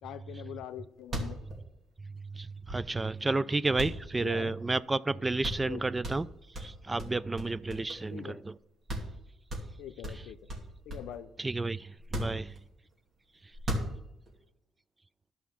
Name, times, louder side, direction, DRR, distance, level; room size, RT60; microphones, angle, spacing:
voice 1, 0.0-1.4 4.2-4.5 5.6-5.8 8.1-8.4 9.8-10.4 10.9-11.3, left 11 dB, 85° left, 0.6 m, -43 dB
sound 1, 0.7-0.8 1.0-3.2 3.8-4.8 5.1-5.2 5.4-5.7 6.0-8.2 8.5-8.6 8.9-9.2 9.5-11.2 12.0-12.9 13.5-14.3, equal, 50° right, 2.5 m, -37 dB
voice 2, 2.0-8.6 10.1-10.2 11.4-12.6 13.4-13.6, right 2 dB, 20° right, 0.3 m, -32 dB
11.5 x 5.6 x 5.8 m
cardioid pair, 90°, 0 cm